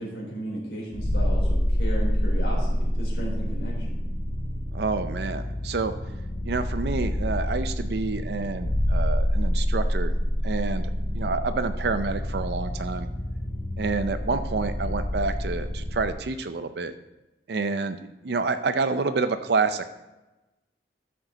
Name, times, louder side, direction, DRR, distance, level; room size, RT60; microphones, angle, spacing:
voice 1, 0.0-4.0, right 1 dB, 85° left, -3 dB, 3.9 m, -35 dB
sound 1, 0.9-16.1, equal, 70° left, 2.4 m, -27 dB
voice 2, 4.7-5.9 6.4-10.1 10.4-13.1 13.8-16.9 17.5-18.0 18.2-19.9, right 4 dB, 65° right, 9 dB, 0.5 m, -28 dB
13.0 x 6.5 x 3.9 m, 1.0 s
head